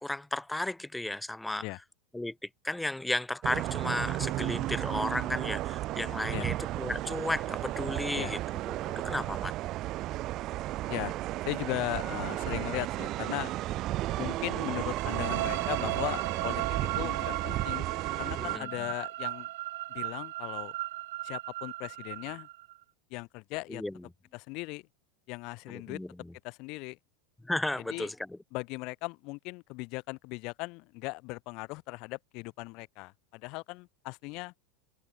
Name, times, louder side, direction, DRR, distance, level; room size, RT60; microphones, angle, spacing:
voice 1, 0.0-1.7 2.1-2.4 2.6-8.4 8.7-9.5 18.4-18.9 23.7-24.0 25.7-26.3 27.4-28.4, left 1 dB, 5° left, 2.1 m, -34 dB
sound 1, 3.4-18.6, right 16 dB, 45° right, 0.4 m, -33 dB
voice 2, 11.4-13.5 14.2-16.6 17.0-17.9 18.2-19.5 19.9-20.7 21.2-22.5 23.1-23.8 24.3-24.8 25.3-26.0 26.4-27.0 27.9-28.1 28.5-34.5, left 25 dB, 55° left, 0.8 m, -38 dB
sound 2, 15.0-22.8, right 17 dB, 70° right, 0.9 m, -37 dB
hypercardioid pair, 90°, 0 cm